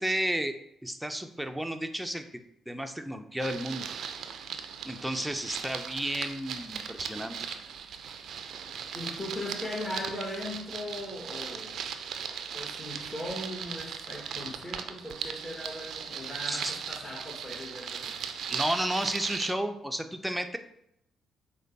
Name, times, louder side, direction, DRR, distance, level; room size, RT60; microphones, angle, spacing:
voice 1, 0.0-3.8 4.8-7.4 16.5-16.7 18.5-20.6, right 1 dB, 5° right, 6 dB, 0.5 m, -32 dB
sound 1, 3.4-19.5, right 7 dB, 70° right, 0.4 m, -38 dB
voice 2, 8.9-11.9 12.5-18.2, left 1 dB, 30° left, 0 dB, 1.5 m, -39 dB
5.0 x 2.2 x 4.0 m, 0.76 s
supercardioid pair, 55°, 0 cm